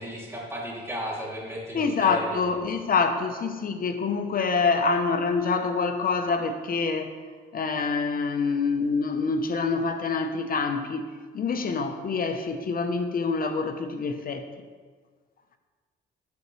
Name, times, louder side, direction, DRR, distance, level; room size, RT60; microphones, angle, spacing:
voice 1, 0.0-2.4, equal, 15° right, -5 dB, 2.6 m, -34 dB
voice 2, 1.7-7.1 7.5-11.1 11.3-14.4, left 4 dB, 45° left, 7 dB, 0.7 m, -26 dB
8.4 x 7.8 x 3.1 m, 1.5 s
cardioid pair, 90°, 20 cm